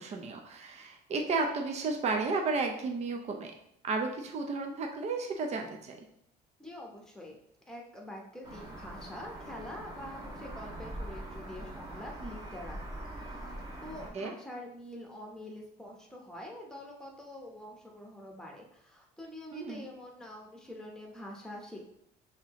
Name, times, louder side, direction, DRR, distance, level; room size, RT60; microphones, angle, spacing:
voice 1, 0.0-3.5 3.8-6.1 14.1-14.3 19.5-19.8, right 3 dB, 40° right, 3 dB, 0.6 m, -33 dB
voice 2, 6.6-7.4 7.7-21.8, left 1 dB, 5° left, -1 dB, 1.1 m, -46 dB
sound 1, 8.4-14.1, right 1 dB, 25° right, 1.4 m, -43 dB
5.8 x 2.8 x 3.1 m, 0.73 s
cardioid pair, 110°, 17 cm